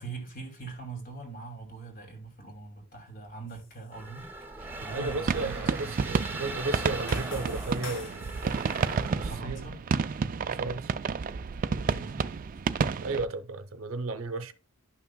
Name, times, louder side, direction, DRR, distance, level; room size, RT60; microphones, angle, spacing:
voice 1, 0.0-4.3 4.8-6.0 9.3-9.8 12.0-12.4, right 4 dB, 45° left, 2.4 m, -42 dB
sound 1, 3.5-3.9 4.2-8.8, left 4 dB, 65° left, 1.7 m, -48 dB
sound 2, 3.9-9.3, right 2 dB, 10° right, 1.3 m, -40 dB
sound 3, 4.6-13.3, right 5 dB, 40° right, 0.3 m, -31 dB
voice 2, 4.9-8.3 9.1-9.7 10.5-10.9 13.0-14.5, right 3 dB, 90° right, 0.7 m, -34 dB
11.5 x 5.8 x 2.2 m
head